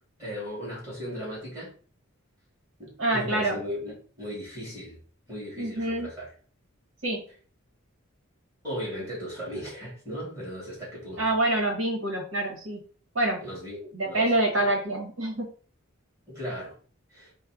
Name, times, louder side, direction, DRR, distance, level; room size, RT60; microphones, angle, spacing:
voice 1, 0.2-1.7 2.8-5.0 5.3-6.3 8.6-11.3 13.4-14.7 16.3-16.7 17.1-17.3, equal, 15° right, -6 dB, 2.3 m, -37 dB
voice 2, 3.0-3.6 5.6-6.1 7.0-7.2 11.2-12.8 13.1-13.4 13.9-15.5, right 1 dB, 70° right, 2 dB, 1.1 m, -26 dB
4.8 x 2.1 x 4.7 m, 0.42 s
head